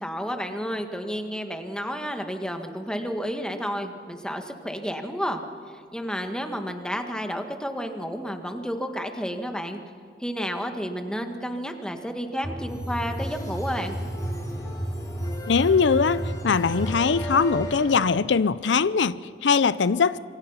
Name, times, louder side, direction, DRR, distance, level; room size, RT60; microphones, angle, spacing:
voice 1, 0.0-5.4 5.7-9.8 10.2-14.0, equal, 5° left, 5 dB, 1.7 m, -31 dB
sound 1, 12.4-18.0, equal, 20° left, 3.5 m, -32 dB
voice 2, 15.5-20.2, left 5 dB, 90° left, 16 dB, 0.6 m, -21 dB
27.0 x 23.5 x 5.7 m, 2.2 s
head